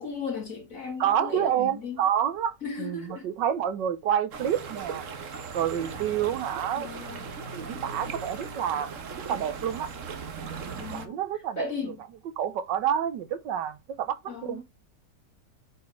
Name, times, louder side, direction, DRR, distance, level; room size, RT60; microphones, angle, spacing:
voice 1, 0.0-2.0 2.6-3.3 6.8-7.2 10.8-11.1 11.6-12.0 14.3-14.6, left 5 dB, 50° left, 2.5 m, -36 dB
voice 2, 1.0-5.1 5.5-6.9 7.5-9.0 9.3-9.9 10.9-11.7 12.4-14.6, right 9 dB, 85° right, 1.5 m, -28 dB
sound 1, 4.3-11.1, right 5 dB, 50° right, 1.3 m, -38 dB
8.3 x 4.6 x 3.1 m
omnidirectional pair, 1.9 m